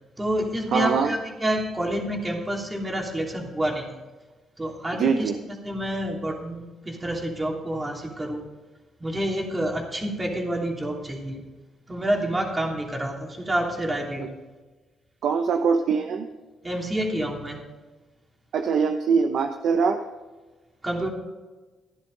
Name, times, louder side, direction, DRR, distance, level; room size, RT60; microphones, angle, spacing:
voice 1, 0.2-3.9 4.6-5.3 5.6-8.4 9.0-11.4 11.9-14.3 16.6-17.6 20.8-21.1, right 1 dB, 20° right, 0 dB, 3.0 m, -28 dB
voice 2, 0.7-1.1 4.9-5.4 14.2-14.3 15.2-16.3 18.5-20.0, right 5 dB, 70° right, 6 dB, 0.8 m, -23 dB
15.0 x 11.0 x 4.0 m, 1.3 s
cardioid pair, 90°, 0 cm